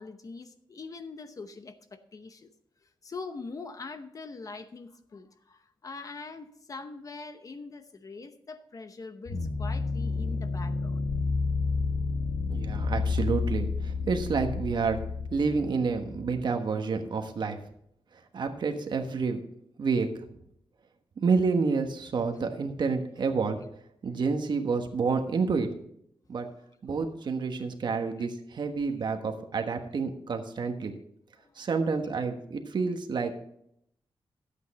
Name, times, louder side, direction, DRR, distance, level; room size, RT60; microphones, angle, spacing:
voice 1, 0.0-2.5 3.0-11.0 26.5-26.7 28.2-28.3 31.4-31.7, left 3 dB, 40° left, 0.8 m, -43 dB
sound 1, 9.3-16.4, left 4 dB, 75° left, 1.2 m, -30 dB
voice 2, 12.5-15.0 15.3-17.6 18.3-19.4 19.8-20.2 21.2-23.6 24.0-25.7 26.3-26.5 26.8-30.9 31.6-33.3, right 4 dB, 55° right, 1.3 m, -29 dB
12.5 x 8.4 x 4.2 m
wide cardioid pair, 160°, 9 cm